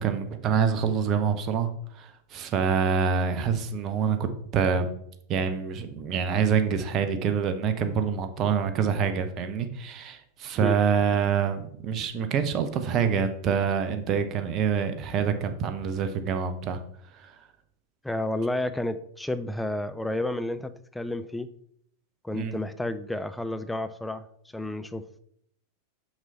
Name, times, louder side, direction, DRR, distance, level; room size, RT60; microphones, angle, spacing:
voice 1, 0.0-4.9 5.3-16.8 17.1-17.3 22.3-22.6, right 6 dB, 35° right, 9 dB, 0.8 m, -26 dB
voice 2, 18.0-21.5 22.2-24.3 24.5-25.1, left 1 dB, 5° left, 12 dB, 0.4 m, -31 dB
6.0 x 5.5 x 4.2 m, 0.68 s
figure-of-eight pair, 90°, 0 cm